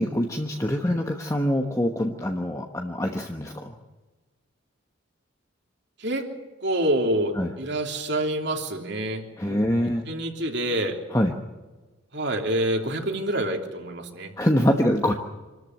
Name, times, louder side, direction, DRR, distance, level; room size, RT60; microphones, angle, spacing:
voice 1, 0.0-3.7 7.3-7.5 9.4-10.1 11.1-11.3 14.4-15.1, equal, 15° left, 3 dB, 1.1 m, -24 dB
voice 2, 6.6-9.6 10.1-11.0 12.1-14.3, right 1 dB, 55° right, 3 dB, 3.1 m, -27 dB
26.5 x 14.0 x 9.3 m, 1.2 s
head